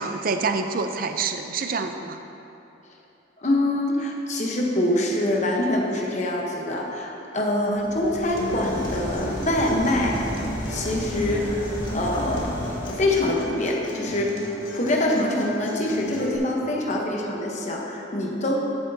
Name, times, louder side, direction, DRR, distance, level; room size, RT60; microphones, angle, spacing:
voice 1, 0.0-2.2, right 4 dB, 45° right, 6 dB, 0.5 m, -27 dB
voice 2, 3.4-10.2 10.7-11.7 11.9-14.4 14.7-18.7, left 1 dB, 35° left, 0 dB, 1.0 m, -25 dB
sound 1, 7.7-13.4, equal, 20° right, 1.8 m, -34 dB
Acoustic guitar, 8.4-16.4, equal, 80° left, 1.4 m, -34 dB
13.0 x 7.9 x 2.8 m, 2.9 s
head